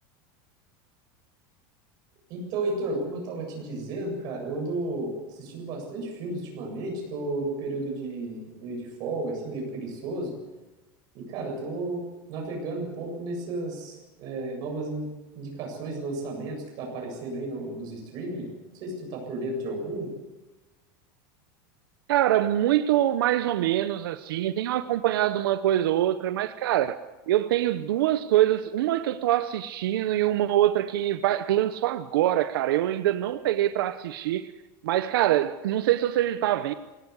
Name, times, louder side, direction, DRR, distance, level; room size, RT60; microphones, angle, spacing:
voice 1, 2.3-10.3 11.1-12.0 12.3-18.5 18.8-20.1, right 2 dB, 35° right, 7.9 m, -33 dB
voice 2, 22.1-27.0 27.3-34.5 34.8-36.7, right 13 dB, 90° right, 0.9 m, -24 dB
22.0 x 18.0 x 8.2 m
supercardioid pair, 175°, 12 cm